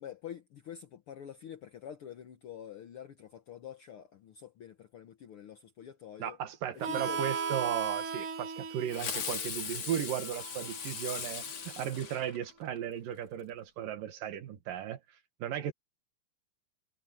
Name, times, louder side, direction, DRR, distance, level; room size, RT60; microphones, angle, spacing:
voice 1, 0.0-6.4 6.9-7.3, left 9 dB, 70° left, 1.3 m, -47 dB
voice 2, 6.2-15.0 15.4-15.7, right 10 dB, 85° right, 3.3 m, -36 dB
Harmonica, 6.8-12.1, right 6 dB, 45° right, 2.4 m, -38 dB
Fireworks, 8.9-12.8, left 6 dB, 50° left, 3.4 m, -39 dB
omnidirectional pair, 3.8 m